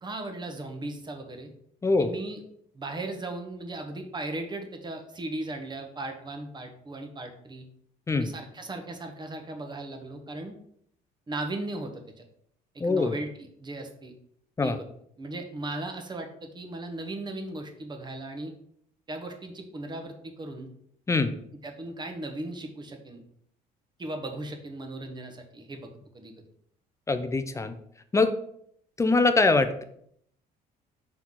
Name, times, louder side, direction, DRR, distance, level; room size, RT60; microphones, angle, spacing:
voice 1, 0.0-1.5 2.0-2.4 2.7-7.6 8.1-10.5 11.3-12.2 12.7-14.1 14.6-14.8 15.2-18.5 19.1-20.7 21.6-23.2 24.0-25.9 26.1-26.3, right 2 dB, 25° right, 5 dB, 1.1 m, -37 dB
voice 2, 12.8-13.2 14.6-14.8 21.1-21.4 27.1-27.8 28.1-28.3 29.0-29.8, left 3 dB, 15° left, 9 dB, 0.6 m, -23 dB
5.8 x 4.6 x 3.8 m, 0.69 s
cardioid pair, 110°, 17 cm